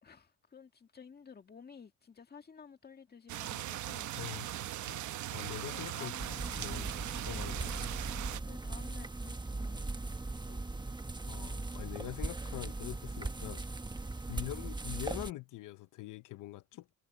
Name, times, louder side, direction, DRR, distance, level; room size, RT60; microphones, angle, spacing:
voice 1, 0.0-4.2 5.7-7.0 8.5-10.1 10.5-10.8 14.3-14.6, left 6 dB, 30° left, 1.8 m, -54 dB
sound 1, 3.3-8.4, right 13 dB, 75° right, 1.0 m, -39 dB
voice 2, 4.2-6.1 6.6-6.9 7.3-7.8 11.3-13.6 14.3-16.9, left 17 dB, 85° left, 0.9 m, -44 dB
sound 2, 6.2-15.3, right 2 dB, 15° right, 1.2 m, -39 dB
cardioid pair, 90°, 30 cm